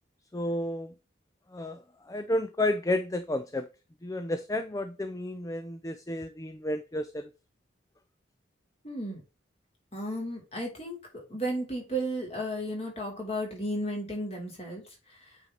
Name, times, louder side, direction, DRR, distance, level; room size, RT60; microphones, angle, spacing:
voice 1, 0.3-0.9 1.5-1.8 2.1-3.7 4.0-7.2, left 1 dB, 20° left, 0.5 m, -31 dB
voice 2, 8.8-9.2 9.9-11.0 11.3-14.8, equal, 35° left, 3.4 m, -33 dB
8.7 x 4.4 x 3.9 m
head